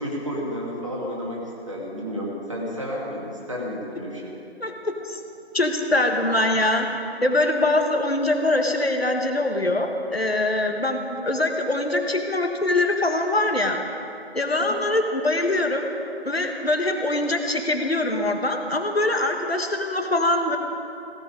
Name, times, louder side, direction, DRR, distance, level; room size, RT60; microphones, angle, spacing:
voice 1, 0.0-1.4 1.7-4.2, equal, 30° right, -3 dB, 2.3 m, -31 dB
voice 2, 4.6-5.2 5.5-6.9 7.2-13.8 14.4-15.9 16.2-20.6, left 2 dB, 65° left, 4 dB, 1.7 m, -23 dB
16.5 x 15.5 x 5.1 m, 2.8 s
figure-of-eight pair, 170°, 33 cm